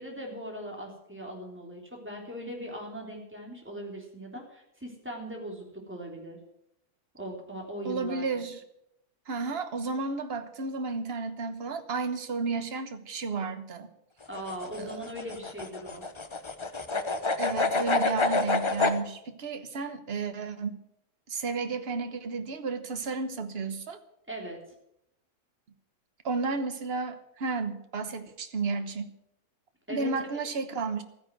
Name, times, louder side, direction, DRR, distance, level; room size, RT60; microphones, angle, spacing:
voice 1, 0.0-6.4 7.2-8.4 14.3-16.0 24.3-24.6 29.9-30.1, equal, 5° right, -1 dB, 3.5 m, -39 dB
voice 2, 7.8-8.6 9.3-13.9 14.8-15.0 17.4-20.8 21.3-24.0 26.2-29.1 29.9-31.0, right 4 dB, 45° right, 9 dB, 1.3 m, -32 dB
sound 1, 14.2-19.0, left 3 dB, 30° left, 0.6 m, -28 dB
13.5 x 10.0 x 7.8 m, 0.79 s
omnidirectional pair, 1.7 m